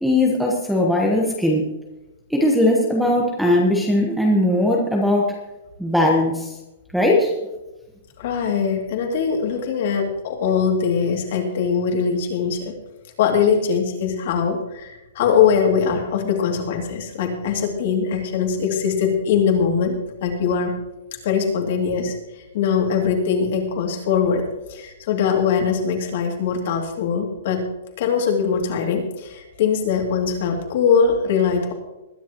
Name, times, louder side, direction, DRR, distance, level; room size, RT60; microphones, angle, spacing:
voice 1, 0.0-1.7 2.3-5.3 5.8-6.5 6.9-7.3, left 1 dB, ahead, -1 dB, 1.2 m, -19 dB
voice 2, 8.2-12.7 13.2-19.9 20.2-20.8 21.2-22.2 22.5-24.4 24.7-27.6 28.0-31.7, left 6 dB, 40° left, 2 dB, 2.6 m, -21 dB
21.0 x 10.5 x 3.0 m, 1.0 s
hypercardioid pair, 180°, 0 cm